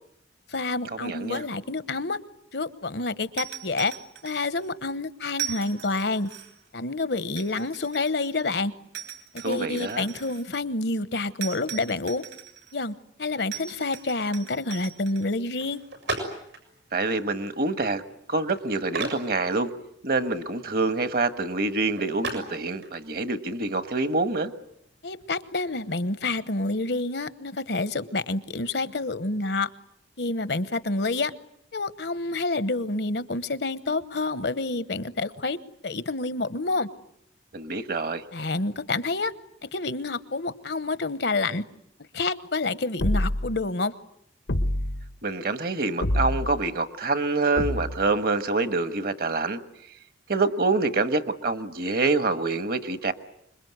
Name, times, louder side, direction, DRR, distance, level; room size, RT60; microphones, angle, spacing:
voice 1, 0.5-2.2 2.5-3.9 4.2-6.3 6.7-8.7 9.4-12.2 12.7-12.9 13.2-15.8 25.0-29.7 30.2-31.3 31.7-35.6 35.8-36.9 38.3-39.3 39.6-41.6 42.1-43.9, left 3 dB, 65° left, 14 dB, 1.1 m, -28 dB
voice 2, 1.0-1.4 9.4-10.1 16.9-18.0 18.3-19.7 20.0-24.5 37.5-38.2 45.2-49.6 50.3-53.1, right 3 dB, 55° right, 11 dB, 1.4 m, -26 dB
sound 1, 3.4-4.7 5.3-6.7 7.4-8.5 8.9-10.5 11.4-12.8 13.5-15.3, right 11 dB, 75° right, 3.1 m, -39 dB
sound 2, 15.6-26.0, right 2 dB, 90° right, 7.1 m, -40 dB
sound 3, 43.0-43.6 44.5-45.1 46.0-46.6 47.6-48.2, left 1 dB, 85° left, 1.4 m, -26 dB
26.0 x 22.5 x 9.5 m, 0.74 s
head